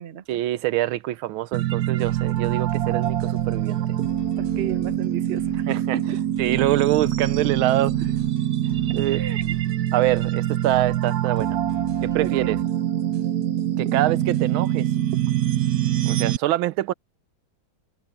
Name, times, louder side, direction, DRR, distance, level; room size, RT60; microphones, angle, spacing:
voice 1, 0.3-3.8 5.7-6.0 6.4-8.0 8.9-9.2 9.9-11.6 12.0-12.6 13.8-14.9 16.0-16.9, right 15 dB, 85° right, 1.5 m, -25 dB
sound 1, 1.5-16.4, right 12 dB, 65° right, 1.0 m, -24 dB
sound 2, 2.0-12.7, left 1 dB, 20° left, 3.9 m, -45 dB
voice 2, 4.4-6.2 8.9-9.5 12.2-12.6, right 9 dB, 40° right, 0.9 m, -34 dB
omnidirectional pair, 2.2 m